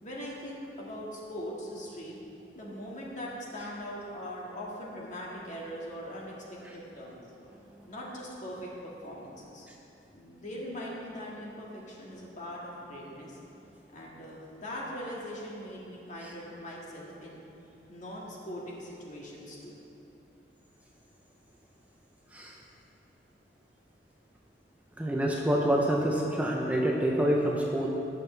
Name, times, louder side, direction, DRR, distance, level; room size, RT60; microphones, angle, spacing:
voice 1, 0.0-2.2 2.5-6.3 6.7-7.2 7.9-9.7 10.1-13.4 13.9-17.4 17.9-19.7, equal, 45° left, -4 dB, 2.0 m, -41 dB
voice 2, 25.0-27.9, right 1 dB, 10° right, -2 dB, 0.7 m, -27 dB
18.5 x 6.4 x 3.4 m, 2.8 s
head